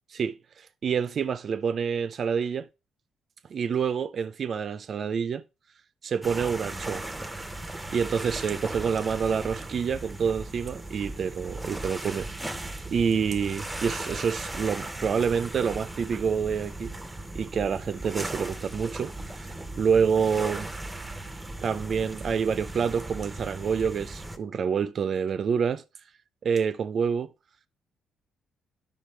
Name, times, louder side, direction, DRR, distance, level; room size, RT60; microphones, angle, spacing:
voice 1, 0.8-2.7 3.5-5.4 6.0-7.0 7.9-16.9 17.3-19.5 19.8-20.7 21.6-25.8 26.4-27.3, right 6 dB, 55° right, 0.5 m, -27 dB
sound 1, 6.2-24.4, right 2 dB, 10° right, 0.9 m, -37 dB
10.5 x 5.3 x 3.3 m
cardioid pair, 90°, 0 cm